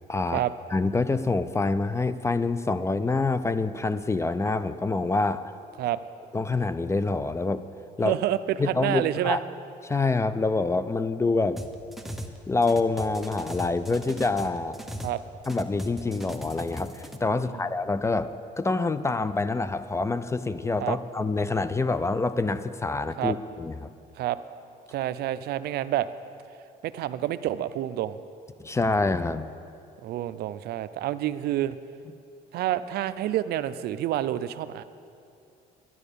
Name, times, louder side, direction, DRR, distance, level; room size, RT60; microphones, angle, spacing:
voice 1, 0.1-0.4 0.7-5.5 6.3-7.6 8.0-8.2 8.6-9.4 9.8-11.6 12.5-14.8 15.5-23.9 28.6-29.5, left 3 dB, 15° left, 13 dB, 0.4 m, -26 dB
voice 2, 8.0-9.4 15.0-15.2 17.5-17.6 20.8-21.0 23.2-23.3 24.2-24.4 24.9-26.1 26.8-28.2 30.0-31.8 32.5-34.8, right 13 dB, 70° right, 14 dB, 0.5 m, -28 dB
sound 1, 11.6-12.4 12.6-15.2 15.4-17.2, equal, ahead, 0.9 m, -37 dB
11.0 x 10.5 x 6.9 m, 2.5 s
cardioid pair, 110°, 17 cm